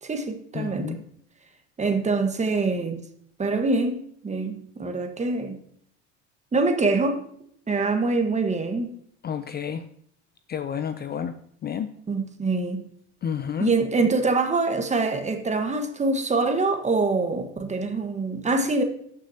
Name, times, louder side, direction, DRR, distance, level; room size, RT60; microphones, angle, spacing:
voice 1, 0.0-1.0 1.8-3.0 3.4-5.6 6.5-7.3 7.7-8.9 12.1-12.8 13.6-18.8, right 3 dB, 20° right, 1.3 m, -24 dB
voice 2, 0.5-1.0 9.2-9.8 10.5-11.4 11.6-11.9 13.2-13.8, left 8 dB, 30° left, 0.5 m, -30 dB
17.5 x 6.2 x 2.8 m
hypercardioid pair, 85°, 35 cm